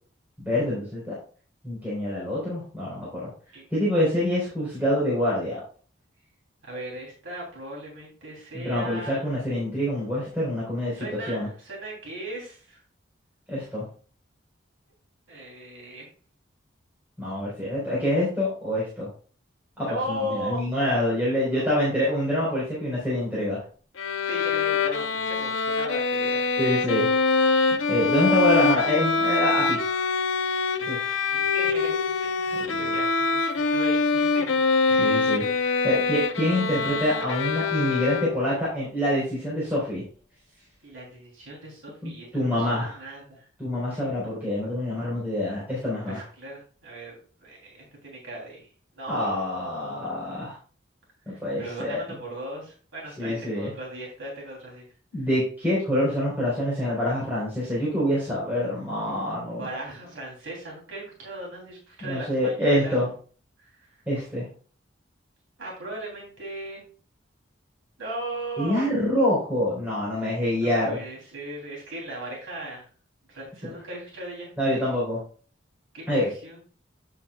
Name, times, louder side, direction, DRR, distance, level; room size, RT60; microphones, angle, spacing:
voice 1, 0.4-1.2 1.6-3.3 3.7-5.6 8.5-11.5 13.5-13.9 17.2-19.1 19.8-23.6 26.6-27.1 27.9-29.8 30.9-31.2 32.5-32.9 35.0-35.4 35.8-40.0 42.0-43.0 43.6-46.2 49.1-50.5 51.3-52.0 53.2-53.7 55.1-59.6 62.0-63.1 64.1-64.5 68.6-71.0 73.6-73.7 74.6-75.2 76.1-76.3, left 1 dB, 10° right, -8 dB, 4.1 m, -26 dB
voice 2, 6.6-9.3 10.9-12.8 15.3-16.0 19.9-20.7 21.2-21.9 24.2-26.5 30.8-31.9 32.2-33.4 33.7-34.6 34.9-35.3 40.8-43.4 43.9-44.1 46.1-48.7 48.9-50.1 51.3-54.8 59.4-63.0 65.6-66.8 68.0-68.9 70.6-72.9 73.3-74.8 75.9-76.6, right 1 dB, 80° right, -3 dB, 3.2 m, -38 dB
Bowed string instrument, 24.0-38.6, left 4 dB, 85° left, 0.8 m, -24 dB
10.0 x 7.4 x 2.3 m, 0.40 s
head